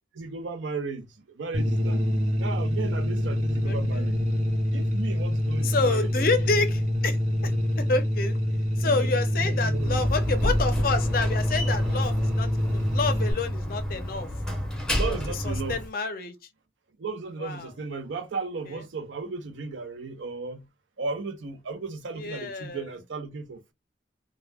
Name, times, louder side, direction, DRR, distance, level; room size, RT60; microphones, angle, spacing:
voice 1, 0.1-2.0 2.3-4.2 4.7-6.3 8.8-9.1 9.4-10.1 15.0-15.8 17.0-20.7 21.0-23.7, right 4 dB, 85° right, 0.6 m, -35 dB
sound 1, 1.5-13.3, equal, 40° right, 0.7 m, -26 dB
voice 2, 3.7-4.0 5.6-8.4 8.8-14.3 15.0-15.2 15.4-16.3 17.4-17.7 18.7-18.8 22.2-22.8, left 3 dB, 50° left, 0.5 m, -29 dB
Slam, 9.7-15.9, equal, 5° left, 0.6 m, -30 dB
2.1 x 2.1 x 3.3 m
head